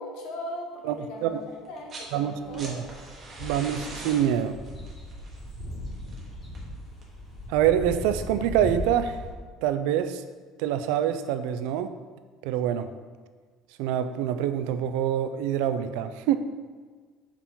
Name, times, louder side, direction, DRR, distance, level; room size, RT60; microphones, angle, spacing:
voice 1, 0.0-2.8, left 1 dB, 75° left, 0 dB, 1.1 m, -39 dB
sound 1, 1.6-2.1 2.4-7.3 8.5-8.6, right 2 dB, 30° right, 1.1 m, -43 dB
voice 2, 2.1-2.8 3.4-4.6 7.5-9.2 9.6-10.2 10.6-11.9 12.4-12.9 13.8-16.4, right 10 dB, 85° right, 10 dB, 0.3 m, -25 dB
sound 2, 2.4-9.3, left 1 dB, 25° left, 1.7 m, -38 dB
5.5 x 4.8 x 3.6 m, 1.5 s
cardioid pair, 165°, 0 cm